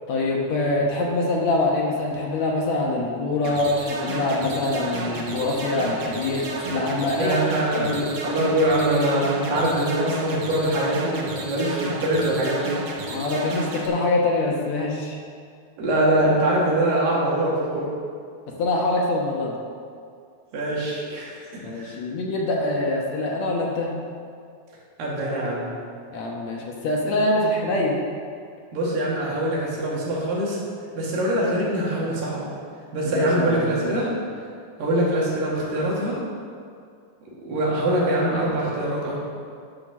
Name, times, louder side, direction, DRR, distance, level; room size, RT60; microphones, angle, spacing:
voice 1, 0.1-7.4 7.7-7.9 13.1-15.2 18.5-19.6 21.6-23.9 26.1-28.0 33.1-34.1, left 2 dB, 65° left, -2 dB, 2.1 m, -24 dB
sound 1, 3.4-13.9, right 2 dB, 55° right, 1.4 m, -32 dB
voice 2, 7.2-12.8 13.1-13.2 15.8-17.9 20.5-22.0 25.0-25.7 28.7-30.6 30.9-32.5 32.9-34.1 34.8-36.2 37.4-39.2, right 1 dB, 90° right, -5 dB, 3.9 m, -23 dB
10.5 x 6.4 x 6.2 m, 2.3 s
omnidirectional pair, 3.9 m